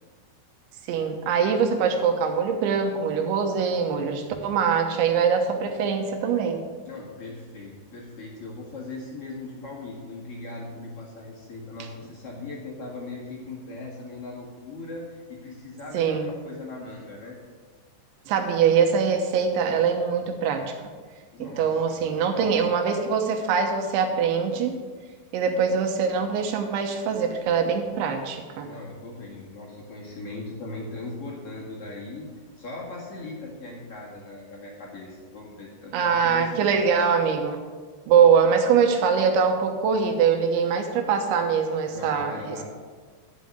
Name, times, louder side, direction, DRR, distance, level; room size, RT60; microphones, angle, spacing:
voice 1, 0.9-6.6 15.9-16.3 18.3-20.6 21.4-24.8 25.3-28.7 35.9-37.6 38.1-42.6, right 6 dB, 75° right, 4 dB, 3.3 m, -23 dB
voice 2, 6.8-17.4 21.3-22.6 28.6-32.3 32.6-36.7 41.9-42.6, left 2 dB, 50° left, -4 dB, 1.8 m, -39 dB
11.5 x 5.6 x 7.8 m, 1.5 s
omnidirectional pair, 5.5 m